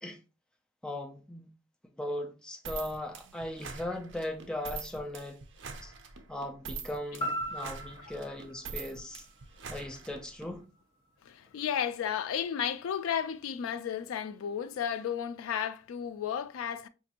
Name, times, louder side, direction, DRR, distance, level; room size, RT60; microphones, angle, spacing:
voice 1, 0.8-1.5 2.0-5.4 5.8-5.9 6.3-9.3 9.7-10.6, left 1 dB, 5° left, 0.4 m, -38 dB
sound 1, 2.6-10.5, right 4 dB, 60° right, 0.5 m, -44 dB
sound 2, 7.2-11.3 11.7-11.8, equal, 25° left, 1.6 m, -40 dB
voice 2, 11.2-16.9, left 8 dB, 80° left, 0.3 m, -33 dB
5.1 x 2.6 x 2.8 m
head